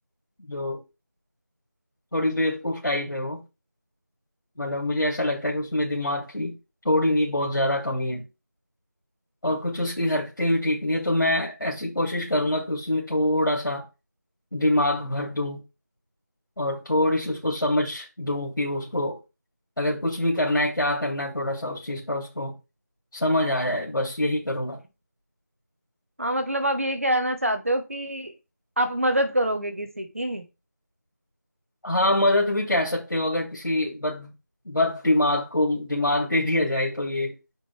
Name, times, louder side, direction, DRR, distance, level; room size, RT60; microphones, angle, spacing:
voice 1, 0.5-0.8 2.1-3.4 4.6-6.5 6.8-8.2 9.4-13.8 14.5-15.6 16.6-19.2 19.8-22.5 23.1-24.8 31.8-34.3 34.6-37.4, left 1 dB, 85° left, 3.0 m, -25 dB
voice 2, 26.2-28.3 28.8-30.5, right 1 dB, 45° right, 1.1 m, -25 dB
8.9 x 5.0 x 3.4 m
figure-of-eight pair, 180°, 10 cm